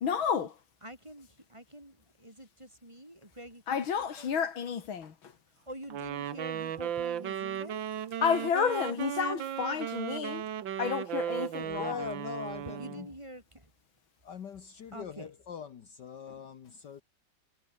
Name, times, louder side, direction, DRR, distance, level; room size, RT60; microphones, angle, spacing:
voice 1, 0.0-0.5 3.7-5.1 8.2-10.4 10.8-12.0, left 7 dB, 80° left, 2.7 m, -30 dB
voice 2, 0.8-4.5 5.7-7.8 11.3-11.7 12.6-13.7 14.9-15.3, right 1 dB, 15° right, 4.3 m, -47 dB
Wind instrument woodwind instrument, 5.9-13.1, right 10 dB, 70° right, 1.9 m, -36 dB
voice 3, 11.8-13.1 14.3-17.0, left 7 dB, 60° left, 1.9 m, -42 dB
omnidirectional pair, 2.2 m